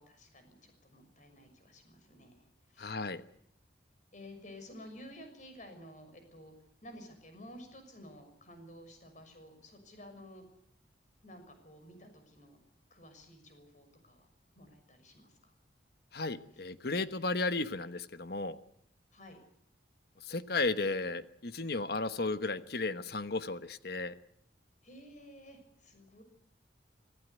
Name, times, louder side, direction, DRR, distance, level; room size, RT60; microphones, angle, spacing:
voice 1, 0.0-3.0 4.1-6.5 6.8-10.5 11.2-12.6 12.9-14.3 14.5-15.5 19.1-19.4 24.8-26.2, left 1 dB, 45° left, 6 dB, 6.4 m, -53 dB
voice 2, 2.8-3.2 16.1-18.6 20.2-24.1, left 3 dB, 60° left, 11 dB, 1.2 m, -34 dB
25.0 x 15.5 x 8.2 m, 0.72 s
head